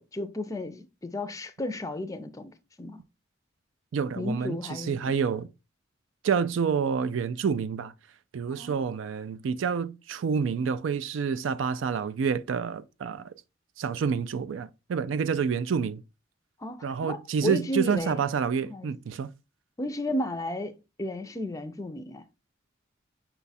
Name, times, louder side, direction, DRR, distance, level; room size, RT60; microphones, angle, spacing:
voice 1, 0.0-3.0 4.2-5.1 8.5-8.7 16.6-18.2 18.7-18.9 19.8-22.2, left 1 dB, 15° left, 0.4 m, -33 dB
voice 2, 3.9-5.5 6.2-7.9 8.3-13.3 13.8-16.0 16.8-19.3, right 6 dB, 75° right, 0.4 m, -28 dB
5.6 x 2.3 x 4.1 m
head